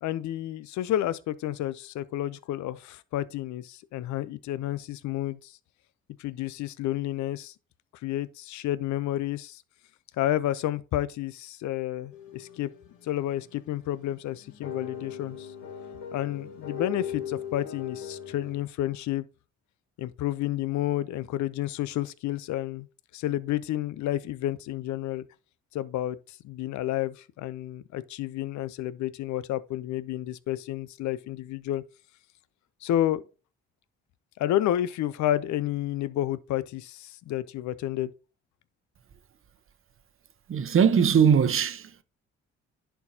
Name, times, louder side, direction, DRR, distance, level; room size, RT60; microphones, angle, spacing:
voice 1, 0.0-5.6 6.2-7.5 8.0-9.6 10.2-12.7 13.0-15.5 16.1-19.2 20.0-22.9 23.1-25.2 25.7-31.8 32.8-33.2 34.4-38.1, left 13 dB, 70° left, 0.6 m, -30 dB
sound 1, 12.1-18.6, left 8 dB, 85° left, 1.5 m, -39 dB
voice 2, 40.5-42.0, right 7 dB, 45° right, 0.9 m, -21 dB
10.5 x 4.6 x 2.8 m
supercardioid pair, 65°, 30 cm